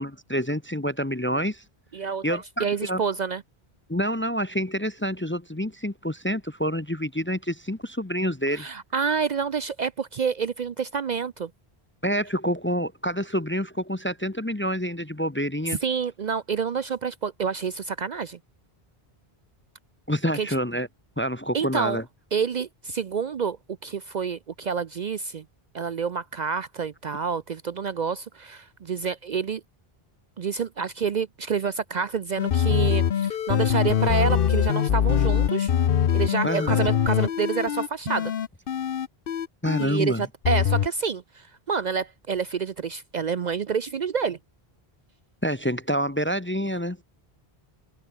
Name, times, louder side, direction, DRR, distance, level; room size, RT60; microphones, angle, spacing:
voice 1, 0.0-1.6 2.2-3.0 3.9-8.7 12.0-15.8 20.1-20.9 21.2-22.0 36.4-36.8 39.6-40.3 45.4-47.0, equal, 15° left, 0.7 m, -27 dB
voice 2, 1.9-3.4 8.6-11.5 15.8-18.4 20.3-20.5 21.5-22.0 22.3-23.6 23.8-25.4 25.7-29.6 30.4-35.7 36.1-38.3 39.8-44.4, right 6 dB, 50° right, 0.6 m, -28 dB
sound 1, 32.4-39.9 40.4-40.9, left 9 dB, 65° left, 0.9 m, -23 dB
omnidirectional pair, 1.0 m